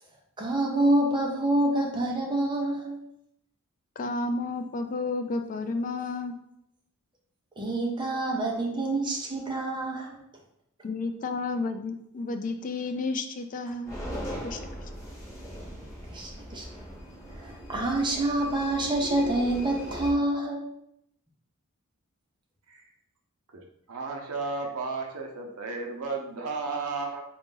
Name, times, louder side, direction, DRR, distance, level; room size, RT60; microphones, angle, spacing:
voice 1, 0.4-3.0 7.6-10.2 16.1-16.6 17.4-20.6, right 1 dB, 20° right, -1 dB, 0.8 m, -27 dB
voice 2, 4.0-6.4 10.8-14.0 14.4-14.6, left 3 dB, 35° left, 7 dB, 0.3 m, -31 dB
sound 1, 13.8-20.1, equal, 15° left, 1.3 m, -39 dB
voice 3, 23.9-27.2, right 4 dB, 85° right, 1 dB, 0.7 m, -33 dB
3.8 x 2.5 x 3.8 m, 0.76 s
head